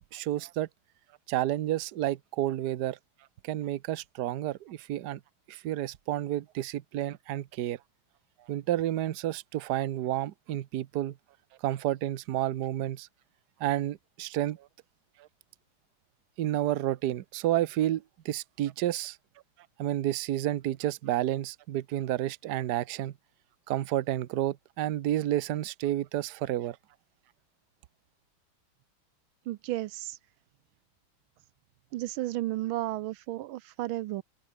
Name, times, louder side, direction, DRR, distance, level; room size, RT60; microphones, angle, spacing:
voice 1, 0.1-0.7 1.3-3.0 3.4-5.2 5.5-7.8 8.5-11.1 11.6-13.1 13.6-14.6 16.4-19.2 19.8-23.1 23.7-26.8, right 13 dB, 60° right, 1.3 m, -30 dB
voice 2, 29.5-30.2 31.9-34.2, right 16 dB, 85° right, 1.4 m, -33 dB
omnidirectional pair, 2.2 m